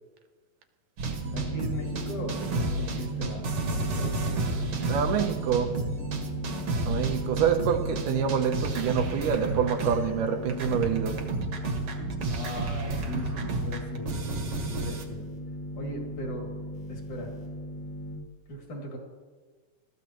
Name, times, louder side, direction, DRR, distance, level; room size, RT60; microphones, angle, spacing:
sound 1, 1.0-10.2 10.5-15.0, right 3 dB, 55° right, 2.0 m, -32 dB
sound 2, 1.2-18.2, equal, 75° left, 4.6 m, -38 dB
voice 1, 1.3-4.5 12.3-15.3 15.7-16.5 16.9-17.3 18.5-19.0, left 1 dB, 60° left, 3.9 m, -38 dB
voice 2, 4.9-5.8 6.8-11.3, right 7 dB, 75° right, 2.3 m, -27 dB
21.5 x 13.5 x 3.0 m
omnidirectional pair, 3.9 m